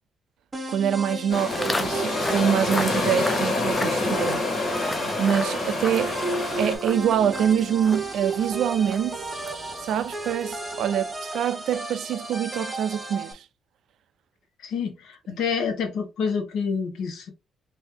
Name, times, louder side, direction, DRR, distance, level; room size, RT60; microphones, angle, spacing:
sound 1, 0.5-13.3, right 2 dB, 20° right, 0.8 m, -33 dB
voice 1, 0.7-4.5 5.2-6.2 6.6-9.2 9.8-13.4 15.3-15.4, right 9 dB, 70° right, 0.3 m, -25 dB
sound 2, 1.3-6.8, left 2 dB, 45° left, 1.7 m, -27 dB
Walk footsteps, 1.5-10.7, left 2 dB, 10° left, 0.4 m, -36 dB
voice 2, 14.6-17.3, left 6 dB, 80° left, 1.1 m, -28 dB
2.9 x 2.7 x 3.6 m
cardioid pair, 160°, 0 cm